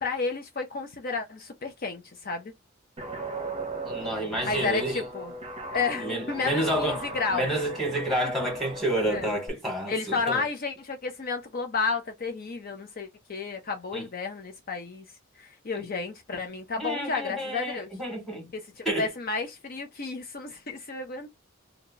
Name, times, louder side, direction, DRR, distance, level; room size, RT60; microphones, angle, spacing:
voice 1, 0.0-2.5 4.4-5.3 5.7-7.5 9.1-9.3 9.9-15.0 15.4-17.9 18.5-21.3, left 4 dB, 50° left, 0.5 m, -32 dB
Guitar, 3.0-9.5, right 2 dB, 30° right, 0.7 m, -37 dB
voice 2, 3.8-5.0 6.0-10.4 13.9-14.0 16.8-18.5 18.8-19.1, right 1 dB, ahead, 1.6 m, -29 dB
2.8 x 2.3 x 3.8 m
head